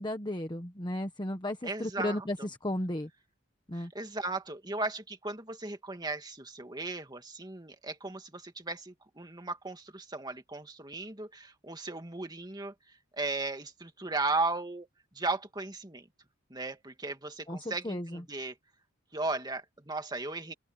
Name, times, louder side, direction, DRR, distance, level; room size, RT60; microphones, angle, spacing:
voice 1, 0.0-3.1 3.7-3.9 17.5-18.2, left 1 dB, 25° left, 1.3 m, -34 dB
voice 2, 1.6-2.3 3.7-12.7 13.2-14.9 15.1-16.0 16.5-18.5 19.1-20.5, right 3 dB, 20° right, 2.2 m, -36 dB
open air
head